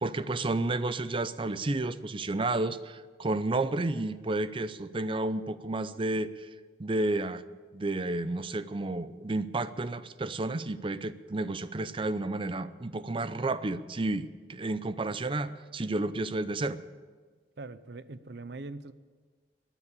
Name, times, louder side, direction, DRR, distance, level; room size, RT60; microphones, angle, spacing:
voice 1, 0.0-6.5 6.8-7.4 7.7-16.8, right 2 dB, 30° right, 14 dB, 0.6 m, -31 dB
voice 2, 17.6-18.9, right 3 dB, 65° right, 14 dB, 0.7 m, -42 dB
15.0 x 10.0 x 8.5 m, 1.5 s
head